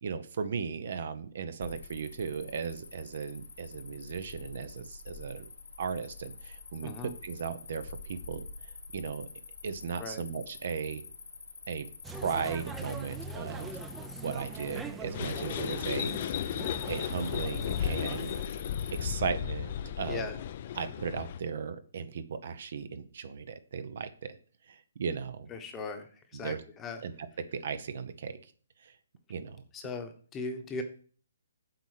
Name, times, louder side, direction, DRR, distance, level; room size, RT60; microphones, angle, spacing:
voice 1, 0.0-5.5 5.8-8.4 8.9-9.3 9.6-11.0 11.7-11.9 12.2-13.7 14.2-16.1 16.9-18.3 19.0-20.3 20.7-24.4 24.7-25.5 26.3-26.6 27.0-28.4 28.8-28.9 29.3-29.6, right 6 dB, 55° right, 11 dB, 0.8 m, -36 dB
Cricket, 1.6-20.5, left 4 dB, 85° left, 1.2 m, -47 dB
voice 2, 6.8-7.1 10.0-10.2 20.1-20.4 25.5-26.1 26.4-27.0 29.7-30.8, left 3 dB, 15° left, 6 dB, 1.0 m, -38 dB
sound 1, 12.0-18.5, right 3 dB, 10° right, 0.6 m, -42 dB
sound 2, 15.1-21.4, left 10 dB, 40° left, 0.5 m, -34 dB
7.8 x 4.2 x 6.6 m, 0.43 s
hypercardioid pair, 155°, 0 cm